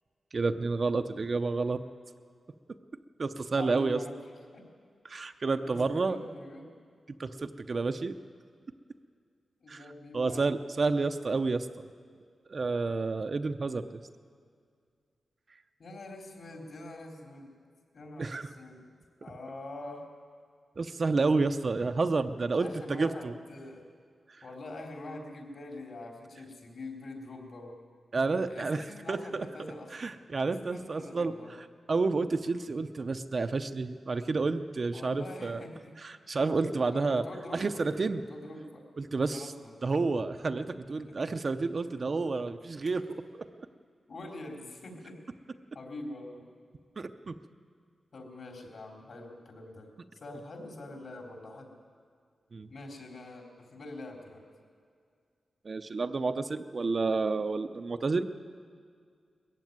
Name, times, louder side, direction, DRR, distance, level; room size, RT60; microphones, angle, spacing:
voice 1, 0.3-1.8 3.2-4.0 5.1-6.2 7.2-8.2 9.7-9.8 10.1-11.9 12.5-14.0 18.2-18.5 20.8-23.3 28.1-28.8 29.1-29.5 29.9-31.3 31.9-35.6 36.0-37.2 37.5-38.2 39.0-39.5 39.8-43.7 47.0-47.4 52.5-52.7 55.6-58.3, right 3 dB, 35° right, 8 dB, 0.6 m, -30 dB
voice 2, 3.6-4.2 4.5-4.6 5.6-6.7 9.6-10.4 15.8-17.5 17.9-18.9 19.2-20.0 22.6-23.8 24.4-27.8 28.4-30.1 30.4-31.5 34.9-35.9 36.9-37.8 38.3-38.8 39.3-40.1 41.0-41.2 44.1-45.2 45.7-46.5 48.1-49.9 50.1-51.7 52.7-54.4, left 2 dB, 55° left, 1 dB, 3.5 m, -44 dB
21.0 x 15.0 x 9.4 m, 2.2 s
wide cardioid pair, 160°, 0 cm